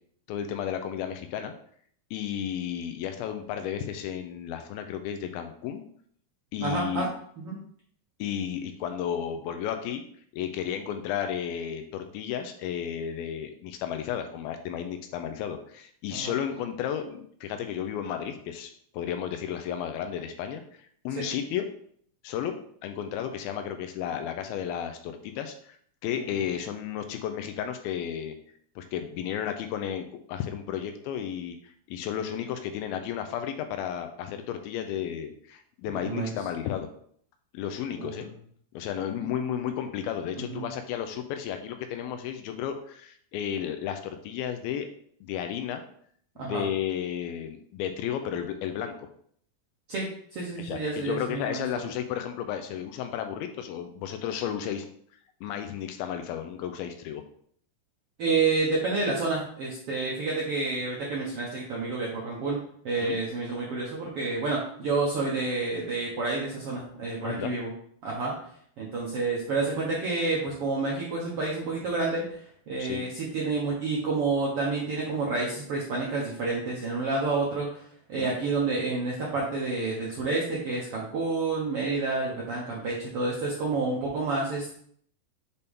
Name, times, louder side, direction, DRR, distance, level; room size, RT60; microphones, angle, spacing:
voice 1, 0.3-1.5 2.1-5.8 6.5-7.1 8.2-10.0 10.3-20.6 21.1-21.7 22.2-22.6 22.8-25.8 26.0-28.4 28.8-36.9 37.5-38.3 38.7-44.9 45.2-45.9 46.4-49.1 50.6-54.9 55.4-57.2 63.0-63.2 67.2-67.5 72.8-73.0 78.2-78.3, left 9 dB, 90° left, 7 dB, 2.4 m, -33 dB
voice 2, 6.6-7.1 7.4-7.6 16.1-16.3 21.2-21.3 36.0-36.3 38.0-38.1 40.5-40.7 46.4-46.6 49.9-50.0 50.3-51.8 58.2-62.6 62.8-67.7 68.0-68.3 68.8-72.4 72.7-77.8 78.1-84.8, right 3 dB, 90° right, -4 dB, 1.2 m, -29 dB
6.7 x 4.2 x 3.5 m, 0.62 s
omnidirectional pair, 4.2 m